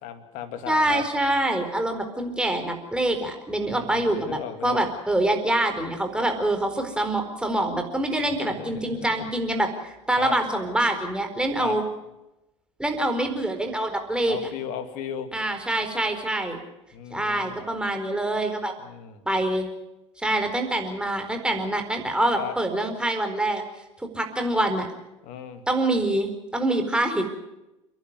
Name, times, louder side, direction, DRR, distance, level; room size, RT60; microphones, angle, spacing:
voice 1, 0.0-1.0 3.7-4.8 8.4-9.3 10.2-10.4 11.6-11.8 14.3-15.3 16.9-17.6 18.8-19.2 22.3-22.5 25.2-25.6, left 9 dB, 55° left, 9 dB, 2.5 m, -36 dB
voice 2, 0.7-11.8 12.8-14.4 15.3-16.6 17.1-18.7 19.3-19.7 20.2-23.6 24.1-24.9 25.7-27.4, right 1 dB, 5° right, 5 dB, 4.4 m, -25 dB
30.0 x 11.5 x 9.6 m, 0.97 s
figure-of-eight pair, 75°, 16 cm